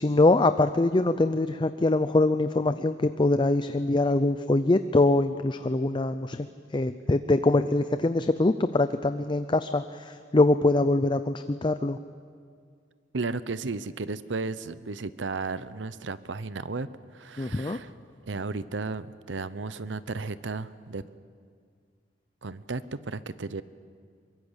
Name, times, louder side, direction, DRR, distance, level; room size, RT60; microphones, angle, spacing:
voice 1, 0.0-6.5 6.7-12.0 17.4-17.8, left 2 dB, 25° left, 11 dB, 0.5 m, -23 dB
voice 2, 13.1-16.9 17.1-17.9 18.2-21.0 22.4-23.6, right 3 dB, 80° right, 15 dB, 0.8 m, -34 dB
23.0 x 22.5 x 8.1 m, 2.2 s
head